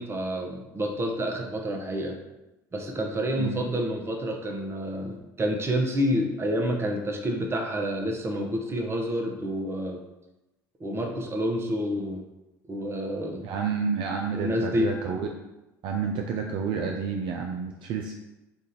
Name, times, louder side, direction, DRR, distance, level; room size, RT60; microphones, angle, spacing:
voice 1, 0.0-2.2 2.7-10.0 10.8-12.2 12.7-13.4 14.3-14.9, equal, 25° right, 2 dB, 0.8 m, -28 dB
voice 2, 13.4-15.3 15.8-18.1, right 6 dB, 55° right, 2 dB, 0.4 m, -30 dB
3.6 x 2.5 x 4.2 m, 0.98 s
hypercardioid pair, 70°, 10 cm